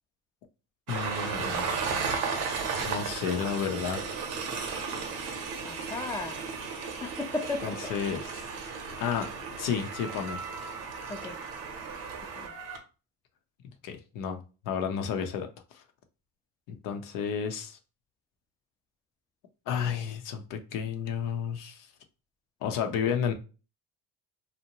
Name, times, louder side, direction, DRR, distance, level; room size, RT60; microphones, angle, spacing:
voice 1, 0.9-1.7 2.8-4.0 7.6-8.3 9.0-10.4 13.8-15.8 16.7-17.8 19.7-21.9 22.6-23.3, left 7 dB, 70° left, 0.6 m, -32 dB
Train, 0.9-12.8, right 5 dB, 70° right, 0.7 m, -35 dB
voice 2, 5.6-6.4 7.0-7.9 11.1-11.4 12.4-12.6, left 3 dB, 10° left, 0.4 m, -35 dB
2.7 x 2.1 x 2.8 m
supercardioid pair, 80°, 33 cm